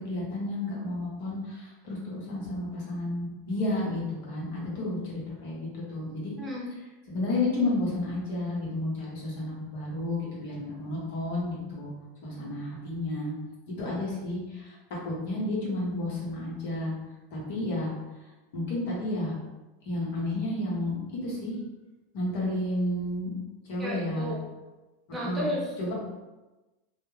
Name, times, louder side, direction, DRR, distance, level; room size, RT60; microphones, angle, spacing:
voice 1, 0.0-6.3 7.1-11.9 12.2-13.3 13.7-14.7 15.0-16.9 17.3-17.9 18.5-19.3 19.8-21.6 22.1-23.3 23.7-24.3 25.2-25.4 25.8-25.9, left 2 dB, 70° left, -5 dB, 1.2 m, -31 dB
voice 2, 6.4-6.7 13.8-13.9 23.8-24.4 25.1-25.9, equal, 20° right, -3 dB, 0.8 m, -33 dB
2.5 x 2.3 x 3.2 m, 1.1 s
hypercardioid pair, 105°, 0 cm